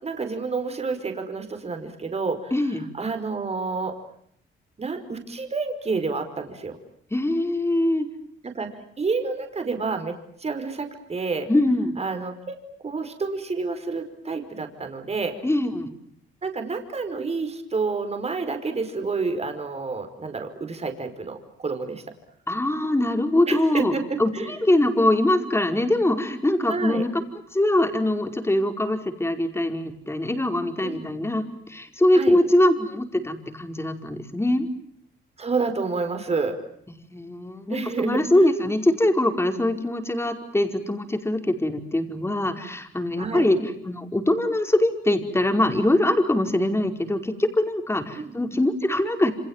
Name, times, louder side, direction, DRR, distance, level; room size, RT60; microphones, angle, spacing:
voice 1, 0.0-2.5 3.0-4.0 4.8-6.8 8.4-11.5 12.0-15.4 16.4-22.0 23.5-24.5 26.7-27.0 30.8-31.0 32.1-32.4 35.4-36.6 37.7-38.5 43.2-43.5 48.2-48.3, right 4 dB, 30° right, 7 dB, 5.3 m, -29 dB
voice 2, 2.5-2.9 7.1-8.1 11.5-12.0 15.4-15.9 22.5-23.9 24.2-27.2 27.5-34.7 37.0-49.3, left 1 dB, 10° left, 6 dB, 5.1 m, -23 dB
29.0 x 27.0 x 7.5 m, 0.68 s
cardioid pair, 90°, 20 cm